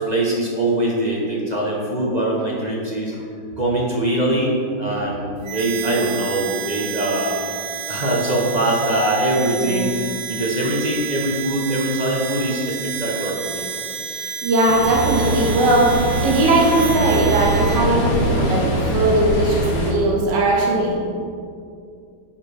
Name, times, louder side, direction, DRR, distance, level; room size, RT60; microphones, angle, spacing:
voice 1, 0.0-3.3 3.6-7.4 7.9-10.0 10.3-13.6, right 1 dB, 35° right, -4 dB, 0.7 m, -22 dB
Harmonica, 5.4-17.9, right 9 dB, 80° right, 0.8 m, -31 dB
voice 2, 9.6-9.9 14.1-16.0 16.2-18.6 18.9-21.0, right 2 dB, 60° right, -3 dB, 1.7 m, -19 dB
Ocean, 14.7-19.9, right 1 dB, 50° left, 1.4 m, -22 dB
10.0 x 5.0 x 3.4 m, 2.4 s
omnidirectional pair, 2.2 m